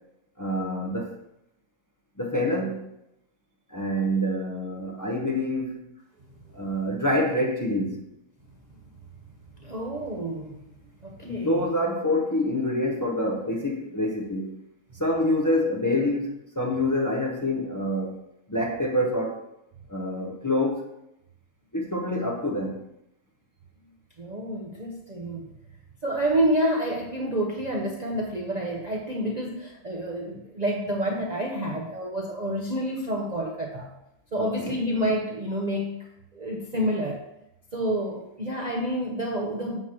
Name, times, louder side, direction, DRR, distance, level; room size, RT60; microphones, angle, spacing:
voice 1, 0.4-1.1 2.2-2.9 3.7-5.8 6.5-8.0 11.2-14.5 15.0-18.2 18.5-19.4 19.9-20.9 21.7-22.8 34.4-34.8, left 1 dB, 25° left, 0 dB, 0.4 m, -26 dB
voice 2, 9.6-10.6 11.0-11.7 24.2-25.5 26.0-33.9 34.3-37.2 37.7-39.8, right 1 dB, 35° right, -2 dB, 0.7 m, -28 dB
7.9 x 3.0 x 5.9 m, 0.84 s
omnidirectional pair, 1.6 m